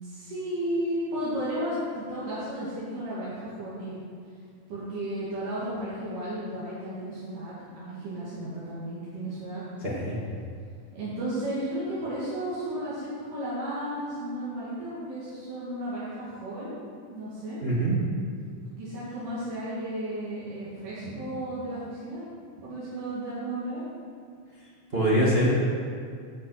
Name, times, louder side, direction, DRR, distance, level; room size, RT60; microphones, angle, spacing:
voice 1, 0.0-4.0 4.7-9.6 10.9-16.8 17.1-17.6 18.8-22.3 22.6-23.8, right 1 dB, 75° right, -11 dB, 3.8 m, -33 dB
voice 2, 9.8-10.2 17.6-17.9 21.0-21.1 24.9-25.5, right 1 dB, 30° right, -7 dB, 1.1 m, -24 dB
15.5 x 5.5 x 6.0 m, 2.2 s
omnidirectional pair, 3.8 m